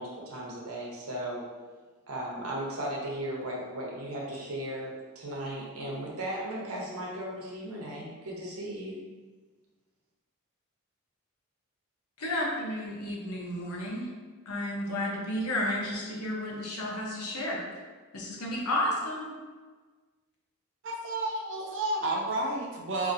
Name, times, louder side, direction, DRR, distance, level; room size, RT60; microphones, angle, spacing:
voice 1, 0.0-1.4 2.1-9.0, right 1 dB, 80° right, -3 dB, 1.0 m, -36 dB
voice 2, 12.2-14.1 14.5-17.6 18.1-19.3, left 1 dB, 85° left, -2 dB, 0.9 m, -32 dB
voice 3, 20.8-23.1, right 2 dB, 55° right, 0 dB, 0.6 m, -31 dB
3.9 x 2.8 x 2.6 m, 1.4 s
head